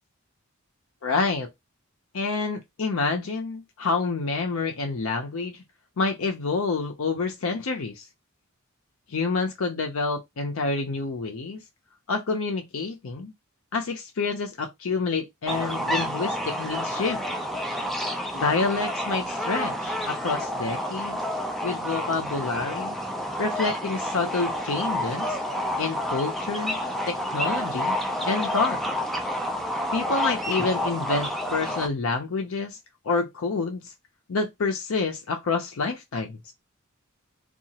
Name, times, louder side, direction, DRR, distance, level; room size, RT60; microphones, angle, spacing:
voice 1, 1.0-1.5 2.1-5.6 6.0-8.1 9.1-11.6 12.1-13.3 13.7-17.2 18.3-21.2 21.6-23.0 23.4-25.4 25.8-26.8 27.1-28.0 28.3-28.8 29.9-32.8 33.0-33.9 34.3-36.5, left 4 dB, 65° left, 0.5 m, -28 dB
sound 1, 15.5-31.9, equal, ahead, 0.3 m, -29 dB
2.7 x 2.3 x 2.8 m
head